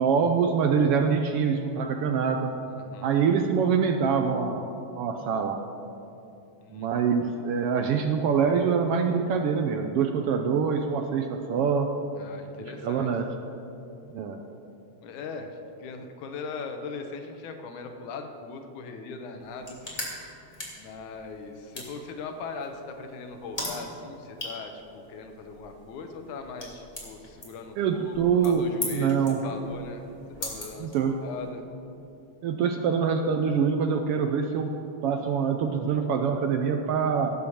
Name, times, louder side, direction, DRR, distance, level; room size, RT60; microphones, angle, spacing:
voice 1, 0.0-2.5 3.0-4.7 5.0-5.6 6.7-11.9 12.8-13.3 14.1-14.4 27.8-28.6 28.9-29.4 30.8-31.2 32.4-34.7 35.0-37.3, right 6 dB, 75° right, 5 dB, 1.3 m, -25 dB
voice 2, 2.7-3.1 6.6-7.0 12.2-13.1 15.0-19.8 20.8-28.2 28.4-30.0 30.4-31.7, left 4 dB, 90° left, 5 dB, 2.5 m, -40 dB
sound 1, 19.4-31.5, left 1 dB, 15° left, 2.3 m, -41 dB
17.5 x 6.8 x 7.1 m, 2.7 s
omnidirectional pair, 3.3 m